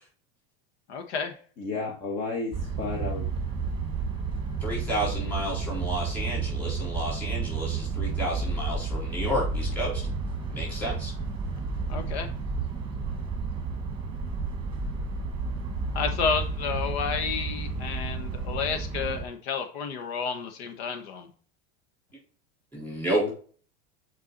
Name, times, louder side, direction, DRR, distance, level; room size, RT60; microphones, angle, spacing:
voice 1, 0.9-1.3 11.9-12.3 15.9-21.3, left 6 dB, 75° left, 6 dB, 1.4 m, -31 dB
voice 2, 1.6-3.2 23.1-23.3, left 3 dB, 35° left, 0 dB, 1.5 m, -32 dB
sound 1, 2.5-19.2, right 4 dB, 15° right, 1.3 m, -31 dB
voice 3, 4.6-10.0 10.5-11.1 22.7-23.2, equal, 5° left, -6 dB, 4.1 m, -31 dB
7.9 x 4.7 x 4.1 m, 0.43 s
supercardioid pair, 165°, 31 cm